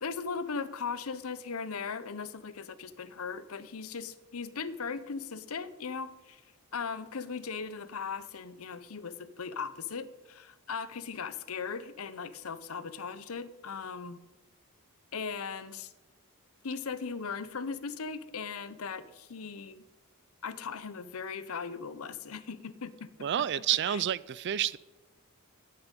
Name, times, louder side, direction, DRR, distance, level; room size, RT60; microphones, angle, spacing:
voice 1, 0.0-6.4 6.7-14.2 15.1-15.9 16.6-19.8 20.4-23.1 23.9-24.0, left 5 dB, 70° left, 15 dB, 0.7 m, -38 dB
voice 2, 23.2-24.8, right 10 dB, 50° right, 20 dB, 0.4 m, -29 dB
9.0 x 8.7 x 8.8 m, 1.1 s
head